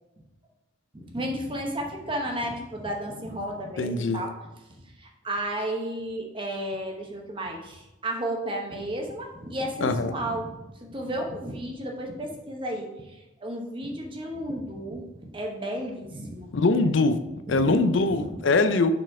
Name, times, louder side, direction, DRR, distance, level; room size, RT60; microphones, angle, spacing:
voice 1, 0.9-4.3 5.0-16.5 17.5-18.4, right 1 dB, 25° right, 1 dB, 0.9 m, -33 dB
voice 2, 3.8-4.2 9.8-10.1 16.5-17.2 17.5-18.9, left 3 dB, 70° left, 9 dB, 0.5 m, -22 dB
6.7 x 4.1 x 4.7 m, 1.0 s
head